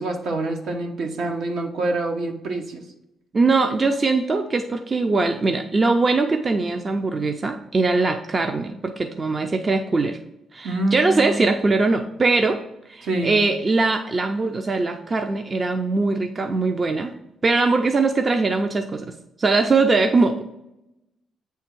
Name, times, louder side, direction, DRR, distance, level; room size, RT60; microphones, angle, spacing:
voice 1, 0.0-2.9 10.6-11.6 13.0-13.4, right 2 dB, 70° right, 3 dB, 1.1 m, -26 dB
voice 2, 3.3-10.2 10.5-12.6 12.9-17.1 17.4-19.1 19.4-20.4, right 3 dB, 35° right, 6 dB, 0.5 m, -21 dB
8.1 x 3.5 x 4.5 m, 0.89 s
cardioid pair, 90°, 0 cm